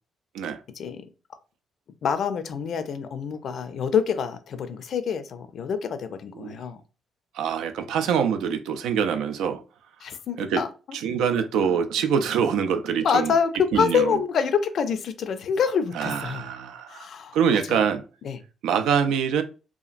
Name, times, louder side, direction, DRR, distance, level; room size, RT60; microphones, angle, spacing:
voice 1, 2.0-6.8 10.0-10.7 13.0-13.5 13.7-16.4 16.9-17.4 17.7-17.8 18.2-18.4, left 7 dB, 65° left, 0.4 m, -26 dB
voice 2, 7.3-9.6 10.4-10.6 10.9-13.3 13.7-14.2 15.9-17.1 17.3-18.0 18.6-19.4, right 7 dB, 90° right, 0.3 m, -24 dB
2.8 x 2.4 x 2.4 m
cardioid pair, 90°, 0 cm